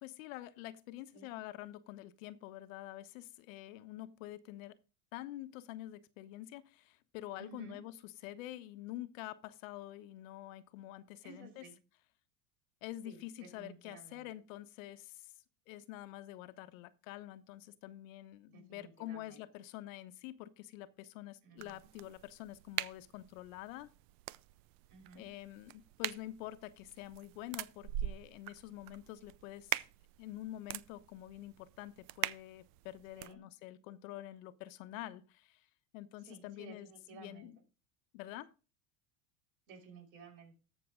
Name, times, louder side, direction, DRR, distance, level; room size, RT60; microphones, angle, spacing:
voice 1, 0.0-4.8 5.1-11.7 12.8-15.3 15.7-23.9 25.1-29.8 30.2-35.6 35.9-37.6 38.1-38.5, left 14 dB, 70° left, 1.1 m, -47 dB
voice 2, 7.4-7.8 11.2-11.8 13.0-14.3 18.5-19.4 21.4-21.8 24.9-25.2 33.1-33.4 36.3-37.5 39.7-40.5, right 5 dB, 75° right, 6.3 m, -54 dB
sound 1, 21.6-33.3, right 15 dB, 55° right, 0.7 m, -44 dB
13.5 x 6.8 x 3.7 m
supercardioid pair, 110°, 41 cm